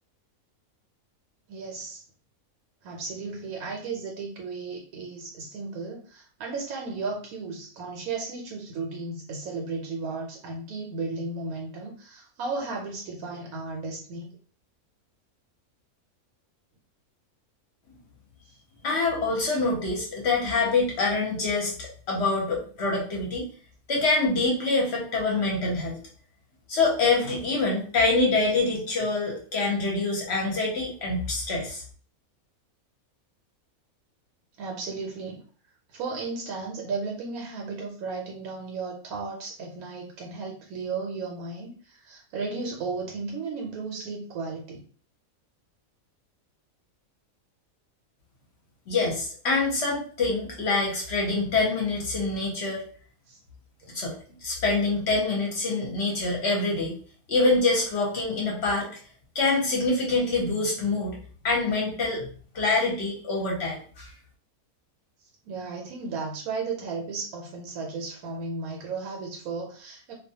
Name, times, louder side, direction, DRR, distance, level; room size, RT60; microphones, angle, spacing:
voice 1, 1.5-2.0 2.8-14.4 34.6-35.4 35.9-44.8 53.3-53.4 65.4-70.1, right 4 dB, 80° right, 0 dB, 1.0 m, -34 dB
voice 2, 18.8-23.5 23.9-25.9 26.7-31.8 48.9-52.8 53.9-54.2 54.4-57.0 57.3-58.9 59.3-61.2 61.4-62.3 62.5-64.1, left 3 dB, 55° left, -2 dB, 0.8 m, -25 dB
2.3 x 2.2 x 2.7 m, 0.43 s
omnidirectional pair, 1.5 m